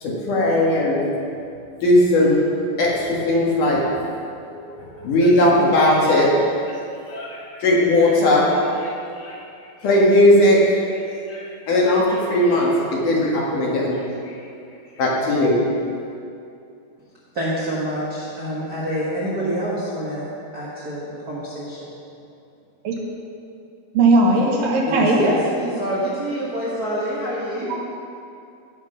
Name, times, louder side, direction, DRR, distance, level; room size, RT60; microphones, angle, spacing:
voice 1, 0.0-1.0 1.8-2.4 2.8-4.0 4.5-4.6 4.9-6.3 6.7-6.8 7.1-9.4 9.8-14.0 15.0-15.6, left 1 dB, 60° left, -4 dB, 3.0 m, -18 dB
voice 2, 17.3-21.9 24.8-27.7, right 1 dB, 45° right, -7 dB, 1.2 m, -26 dB
voice 3, 23.9-25.2 27.7-27.8, right 2 dB, 70° right, -1 dB, 2.6 m, -17 dB
16.5 x 6.0 x 5.6 m, 2.6 s
omnidirectional pair, 4.5 m